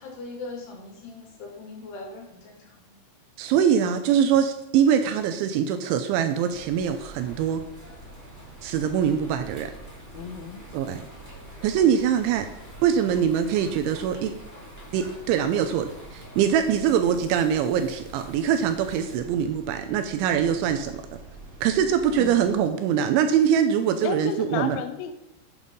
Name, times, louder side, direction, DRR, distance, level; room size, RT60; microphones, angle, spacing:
voice 1, 0.0-3.0, left 3 dB, 60° left, 0 dB, 4.0 m, -40 dB
voice 2, 3.4-7.6 8.6-9.7 10.7-11.1 11.6-12.5 12.8-14.4 14.9-21.0 21.6-24.8, right 8 dB, 80° right, 7 dB, 2.7 m, -23 dB
sound 1, 6.2-19.1, left 1 dB, 5° left, 1.5 m, -50 dB
sound 2, 6.5-22.6, right 2 dB, 45° right, 0.9 m, -46 dB
voice 3, 10.1-10.6 22.2-22.4 24.0-25.1, left 7 dB, 85° left, 9 dB, 3.7 m, -32 dB
8.7 x 8.2 x 5.3 m, 0.94 s
omnidirectional pair, 5.9 m